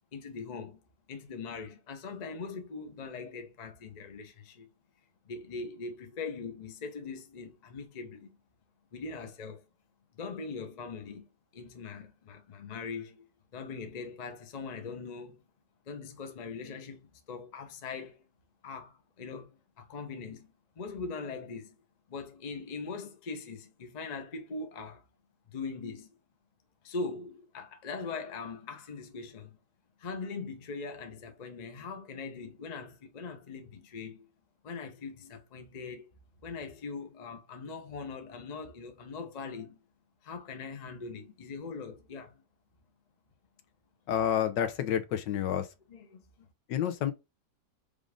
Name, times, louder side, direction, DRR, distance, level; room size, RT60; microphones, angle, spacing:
voice 1, 0.1-0.8 1.1-4.7 5.2-8.4 8.9-9.6 10.1-11.3 11.5-13.3 13.5-15.5 15.9-18.2 18.6-19.5 19.8-21.7 22.1-25.0 25.5-26.1 26.8-29.6 30.0-34.3 34.6-36.1 36.4-39.8 40.2-42.4 45.9-46.2, left 4 dB, 40° left, 0.6 m, -41 dB
voice 2, 44.1-45.7 46.7-47.1, left 9 dB, 75° left, 1.4 m, -29 dB
5.1 x 2.5 x 3.4 m
omnidirectional pair, 2.0 m